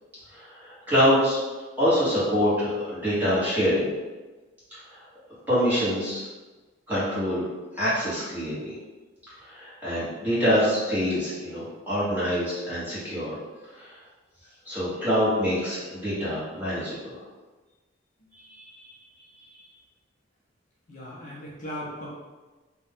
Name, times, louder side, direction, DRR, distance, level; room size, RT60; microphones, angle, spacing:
voice 1, 0.3-1.4 1.8-3.9 5.5-6.2 6.9-7.4 7.8-8.7 9.4-13.4 13.8-13.9 14.6-17.2 18.5-18.9, equal, 10° right, -11 dB, 1.2 m, -25 dB
voice 2, 20.9-22.1, left 1 dB, 40° left, -7 dB, 0.6 m, -38 dB
2.6 x 2.2 x 3.4 m, 1.3 s
head